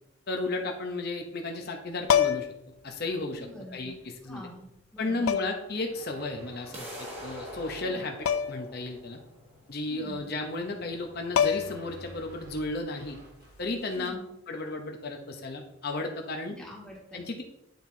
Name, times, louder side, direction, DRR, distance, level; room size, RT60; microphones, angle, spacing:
voice 1, 0.3-2.5 2.8-4.4 5.0-8.2 8.5-9.2 9.7-13.2 13.6-14.1 14.5-16.6 17.1-17.4, left 2 dB, 50° left, 3 dB, 0.7 m, -34 dB
sound 1, 2.0-2.7 4.0-4.1 5.3-5.7 8.3-8.7 9.0-9.1 10.9-11.0 11.4-11.9 13.9-14.1, left 8 dB, 80° left, 0.3 m, -26 dB
voice 2, 3.4-4.0 4.2-5.4 7.8-8.0 9.9-10.2 13.9-14.3 16.5-17.3, left 1 dB, 5° left, -4 dB, 1.6 m, -45 dB
sound 2, 5.6-7.9 10.5-13.7, right 1 dB, 50° right, 1.2 m, -51 dB
sound 3, 6.7-12.7, equal, 30° right, 1.3 m, -45 dB
9.2 x 4.4 x 2.7 m, 0.83 s
head